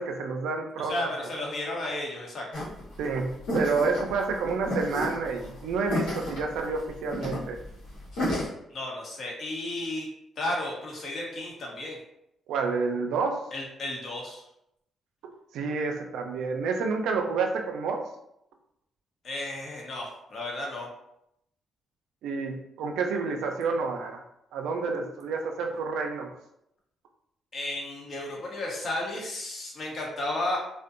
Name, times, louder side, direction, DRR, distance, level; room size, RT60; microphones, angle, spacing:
voice 1, 0.0-1.0 3.0-7.6 12.5-13.4 15.5-18.0 22.2-24.2 24.5-26.3, right 4 dB, 85° right, 4 dB, 0.4 m, -29 dB
voice 2, 0.8-2.5 8.7-10.1 10.4-12.0 13.5-14.4 19.2-20.9 27.5-30.6, left 1 dB, 50° left, -1 dB, 0.8 m, -33 dB
sound 1, 2.5-8.5, left 1 dB, 85° left, 1.0 m, -32 dB
2.6 x 2.1 x 2.5 m, 0.78 s
cardioid pair, 90°, 0 cm